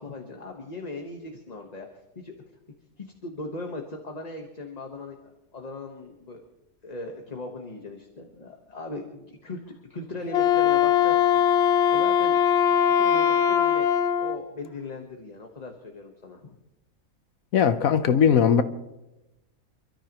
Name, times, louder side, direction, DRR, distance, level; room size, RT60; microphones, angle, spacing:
voice 1, 0.0-2.3 3.0-6.4 6.8-12.3 12.8-13.9 14.2-16.6, left 2 dB, 30° left, 1.3 m, -39 dB
Wind instrument woodwind instrument, 10.2-14.4, left 9 dB, 55° left, 0.8 m, -21 dB
voice 2, 17.5-18.6, left 7 dB, 75° left, 1.3 m, -19 dB
28.5 x 13.5 x 3.0 m
omnidirectional pair, 1.5 m